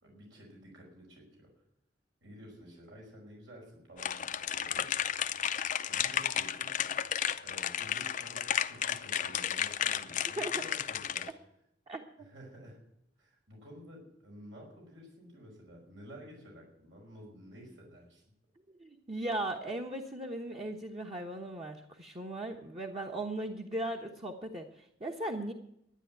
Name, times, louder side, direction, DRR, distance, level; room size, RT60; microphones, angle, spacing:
voice 1, 0.0-1.5 2.2-4.9 5.8-6.7 7.4-11.3 12.2-12.8 13.2-18.2, equal, 80° right, -1 dB, 5.3 m, -52 dB
sound 1, 4.0-11.3, left 9 dB, 45° left, 0.6 m, -33 dB
voice 2, 18.8-25.5, right 1 dB, 30° right, 1 dB, 1.1 m, -38 dB
12.0 x 9.9 x 9.0 m, 0.78 s
head